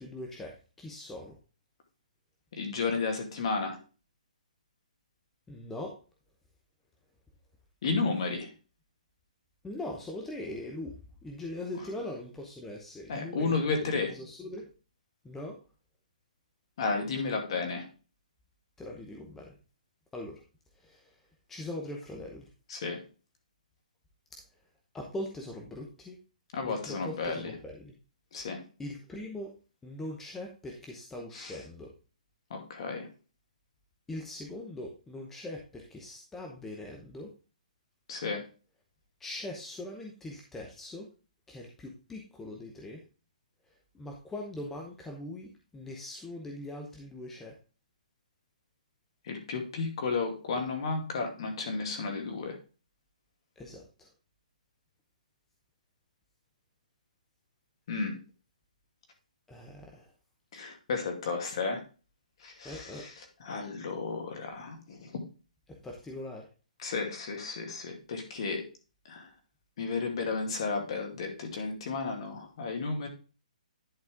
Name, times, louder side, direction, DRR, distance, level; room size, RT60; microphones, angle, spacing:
voice 1, 0.0-1.4 5.5-5.9 9.6-14.6 15.2-15.6 18.8-19.5 20.1-20.4 20.8-21.2 21.5-22.5 24.9-26.2 26.6-27.9 28.8-29.5 29.8-31.9 34.1-37.3 39.2-41.1 41.5-43.0 43.9-47.6 53.6-54.1 59.5-60.1 62.6-63.1 65.7-66.5, left 1 dB, 5° left, 0 dB, 0.8 m, -41 dB
voice 2, 2.5-3.8 7.8-8.5 13.1-14.1 16.8-17.9 22.7-23.0 26.5-27.5 28.3-28.6 31.3-31.6 32.5-33.1 38.1-38.4 49.2-52.6 57.9-58.2 60.5-61.8 62.4-65.1 66.8-68.6 69.1-69.3 69.8-73.1, left 4 dB, 40° left, 4 dB, 2.3 m, -33 dB
10.5 x 4.2 x 3.5 m, 0.34 s
hypercardioid pair, 170°, 4 cm